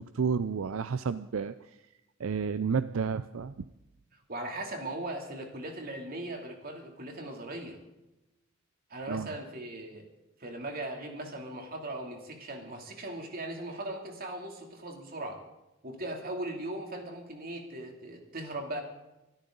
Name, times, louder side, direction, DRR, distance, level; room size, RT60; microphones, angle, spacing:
voice 1, 0.0-1.5 2.2-3.6 9.1-9.3, right 5 dB, 75° right, 13 dB, 0.5 m, -31 dB
voice 2, 4.3-7.8 8.9-10.1 10.4-15.4 15.8-18.8, right 1 dB, 45° right, 2 dB, 3.0 m, -39 dB
25.0 x 13.0 x 4.0 m, 0.97 s
head